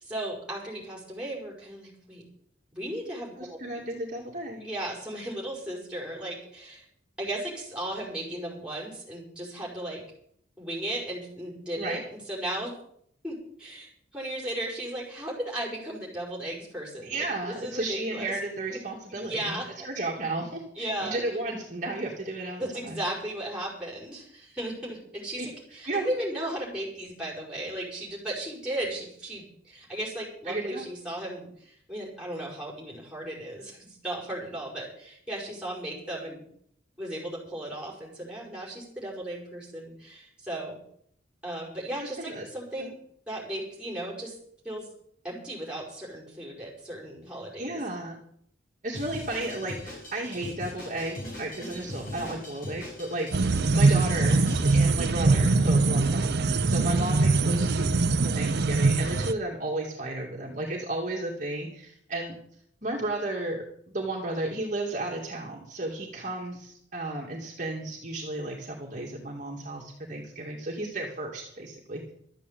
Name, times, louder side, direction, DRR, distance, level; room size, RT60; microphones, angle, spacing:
voice 1, 0.0-2.2 2.7-3.8 4.6-6.8 7.2-10.0 10.6-12.7 13.2-17.3 17.6-18.4 18.7-18.8 19.1-19.7 20.8-21.2 22.6-36.5 37.0-40.8 41.4-43.0 43.3-44.3 44.6-44.9 45.2-47.8, right 1 dB, 5° right, -3 dB, 5.3 m, -36 dB
voice 2, 3.4-4.7 11.8-12.0 17.0-23.0 25.4-25.5 25.9-26.1 30.5-30.9 42.2-42.5 42.8-42.9 47.6-48.2 48.8-54.4 54.7-62.3 62.8-72.1, right 2 dB, 40° right, -2 dB, 2.3 m, -33 dB
Drum kit, 48.9-54.8, left 1 dB, 45° left, 6.4 m, -40 dB
sound 1, 53.3-59.3, right 3 dB, 55° right, 0.6 m, -22 dB
13.0 x 8.5 x 8.4 m, 0.67 s
head